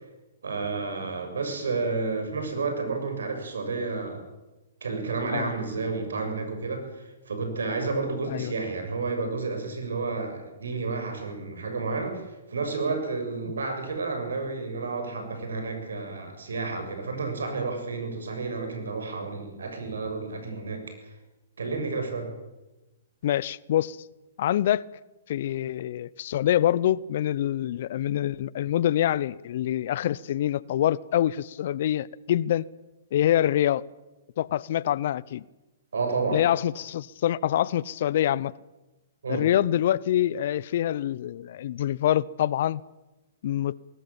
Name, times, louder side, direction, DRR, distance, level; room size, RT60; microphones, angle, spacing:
voice 1, 0.4-4.2 4.8-12.2 12.5-20.8 21.6-22.3 35.9-36.4 39.2-39.5, right 4 dB, 75° right, 6.9 m, -31 dB
voice 2, 23.2-24.0 24.4-24.8 25.3-32.6 33.1-33.8 34.4-35.4 36.3-38.5 39.3-42.8 43.4-43.7, left 11 dB, 55° left, 0.7 m, -25 dB
21.0 x 18.0 x 8.9 m
hypercardioid pair, 125°, 0 cm